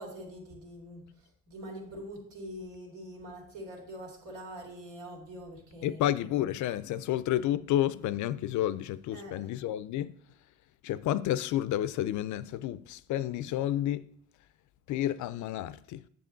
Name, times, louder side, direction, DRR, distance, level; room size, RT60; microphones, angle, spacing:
voice 1, 0.0-6.0 9.1-9.5, equal, 90° right, 2.7 m, -44 dB
voice 2, 5.8-10.2 10.8-14.1 14.9-16.0, left 12 dB, 75° left, 0.5 m, -30 dB
7.6 x 7.4 x 3.9 m
cardioid pair, 90°, 30 cm